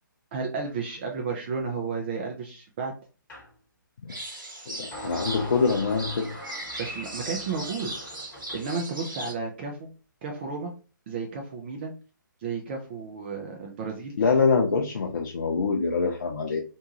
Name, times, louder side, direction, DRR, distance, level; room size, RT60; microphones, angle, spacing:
voice 1, 0.3-2.9 6.8-7.9 8.5-9.9 10.2-10.7 11.1-11.9 12.4-14.1, right 4 dB, 30° right, 0.5 m, -32 dB
sound 1, 3.3-3.5 4.9-8.7, left 1 dB, 15° left, 1.0 m, -41 dB
sound 2, 4.1-9.3, right 1 dB, 75° right, 1.1 m, -38 dB
voice 2, 4.7-6.4 14.2-16.6, left 5 dB, 55° left, 0.5 m, -25 dB
2.7 x 2.2 x 2.8 m
figure-of-eight pair, 135°, 11 cm